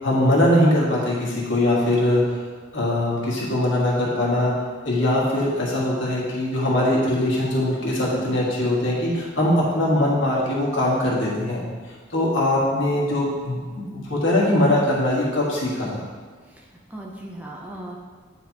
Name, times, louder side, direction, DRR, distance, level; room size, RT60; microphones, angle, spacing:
voice 1, 0.0-2.4 2.7-4.5 4.8-11.6 12.1-16.1, left 1 dB, 70° left, -5 dB, 1.6 m, -21 dB
voice 2, 16.4-18.0, right 1 dB, 10° right, -2 dB, 0.5 m, -38 dB
9.2 x 4.5 x 2.9 m, 1.5 s
head